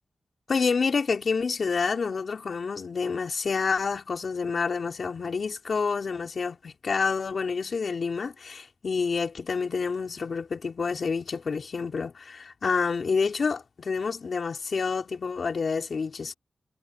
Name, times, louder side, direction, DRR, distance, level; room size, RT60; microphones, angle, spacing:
voice 1, 0.5-16.3, left 5 dB, 65° left, 4.1 m, -28 dB
cardioid pair, 70°, 0 cm